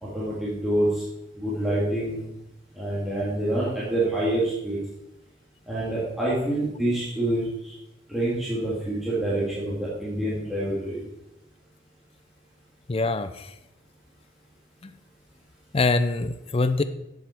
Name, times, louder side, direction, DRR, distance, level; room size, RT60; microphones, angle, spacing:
voice 1, 0.0-1.0 1.4-2.2 2.7-4.8 5.7-7.7 8.1-11.0, right 1 dB, ahead, -9 dB, 2.3 m, -27 dB
voice 2, 12.9-13.5 14.8-14.9 15.7-16.8, left 3 dB, 30° left, 11 dB, 0.5 m, -24 dB
10.5 x 7.4 x 4.4 m, 0.87 s
head